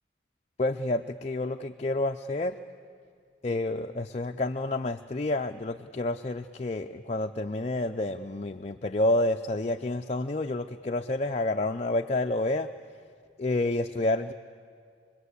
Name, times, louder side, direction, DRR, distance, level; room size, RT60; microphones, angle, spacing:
voice 1, 0.6-2.6 3.4-12.7 13.4-14.3, left 2 dB, 35° left, 5 dB, 0.5 m, -29 dB
25.0 x 21.5 x 8.2 m, 2.2 s
head